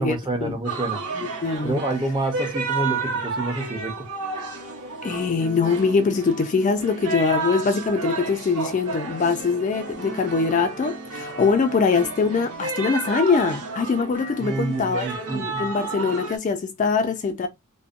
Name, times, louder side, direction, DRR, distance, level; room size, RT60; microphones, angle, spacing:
voice 1, 0.0-1.0 1.6-4.1 14.4-15.7, right 2 dB, 20° right, 0.6 m, -28 dB
sound 1, 0.6-16.4, right 4 dB, 80° right, 0.8 m, -32 dB
voice 2, 1.2-1.8 5.0-17.5, left 4 dB, 35° left, 0.3 m, -23 dB
2.6 x 2.1 x 2.4 m
head